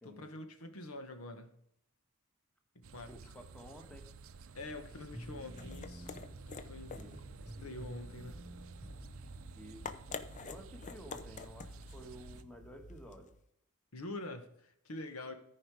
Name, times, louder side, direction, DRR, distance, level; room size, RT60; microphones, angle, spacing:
voice 1, 0.0-1.5 2.7-3.1 4.5-6.1 6.5-7.0 7.6-8.4 13.9-15.3, left 2 dB, 80° left, 7 dB, 1.2 m, -46 dB
sound 1, 2.8-12.4, right 4 dB, 65° right, 0.5 m, -53 dB
voice 2, 3.1-4.1 6.9-7.2 9.5-9.9 10.4-13.3, equal, 5° left, 5 dB, 1.3 m, -52 dB
sound 2, 5.1-10.5, right 1 dB, 10° right, 0.9 m, -51 dB
sound 3, 5.2-13.4, left 4 dB, 35° left, 0.6 m, -49 dB
13.5 x 5.0 x 4.8 m, 0.76 s
head